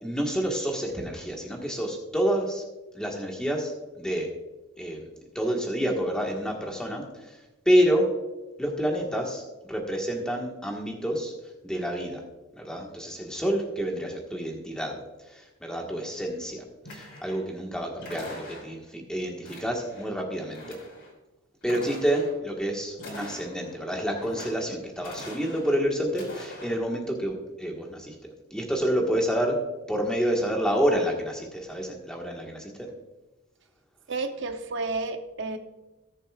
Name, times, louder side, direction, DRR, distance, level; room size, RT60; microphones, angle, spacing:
voice 1, 0.0-2.6 2.9-4.3 4.8-5.0 5.3-8.1 8.6-9.4 9.7-11.3 11.6-12.2 12.5-16.6 16.9-20.8 21.6-28.1 28.5-29.6 29.9-32.9, equal, 5° left, 0 dB, 1.5 m, -28 dB
sound 1, 16.8-17.5 18.0-18.9 19.4-20.1 20.4-21.1 21.6-22.4 22.9-23.8 24.1-24.7 25.0-25.8 26.1-26.8, left 1 dB, 55° left, 3.1 m, -43 dB
voice 2, 34.1-35.6, right 3 dB, 55° right, 7 dB, 0.7 m, -31 dB
18.5 x 7.0 x 2.4 m, 1.1 s
head